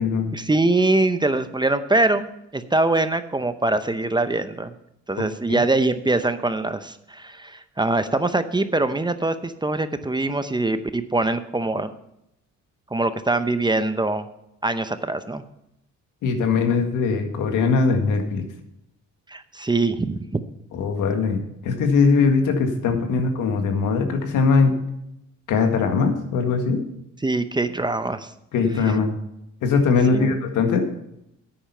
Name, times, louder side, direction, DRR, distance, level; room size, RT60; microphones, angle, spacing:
voice 1, 0.3-4.7 5.1-11.9 12.9-14.3 14.6-15.4 19.3-20.4 27.2-28.3 30.1-30.4, right 2 dB, 15° right, 11 dB, 0.7 m, -23 dB
voice 2, 16.2-18.4 20.7-24.8 25.5-26.8 28.5-29.1 29.6-30.9, left 4 dB, 85° left, 5 dB, 1.8 m, -21 dB
10.0 x 8.7 x 5.6 m, 0.81 s
cardioid pair, 90°, 30 cm